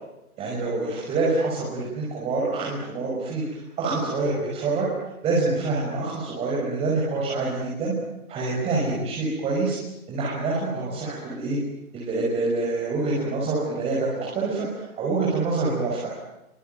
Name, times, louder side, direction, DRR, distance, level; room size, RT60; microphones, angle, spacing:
voice 1, 0.4-4.9 5.2-7.9 8.3-9.8 10.1-11.6 11.9-16.1, right 3 dB, 15° right, -5 dB, 5.8 m, -26 dB
25.0 x 24.5 x 9.2 m, 0.92 s
hypercardioid pair, 160°, 44 cm